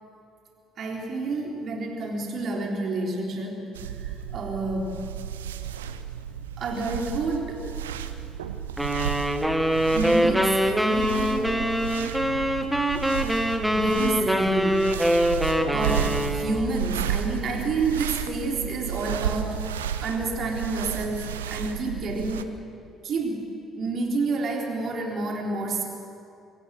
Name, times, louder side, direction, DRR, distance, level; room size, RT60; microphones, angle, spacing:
voice 1, 0.8-5.0 6.6-7.7 9.9-11.9 13.7-15.0 15.6-22.5 23.0-25.8, right 3 dB, 50° right, 1 dB, 3.6 m, -29 dB
sound 1, 3.8-22.4, right 9 dB, 75° right, 0.7 m, -33 dB
sound 2, 8.8-16.7, equal, 5° right, 1.7 m, -24 dB
24.0 x 15.0 x 7.8 m, 2.5 s
figure-of-eight pair, 50°, 0 cm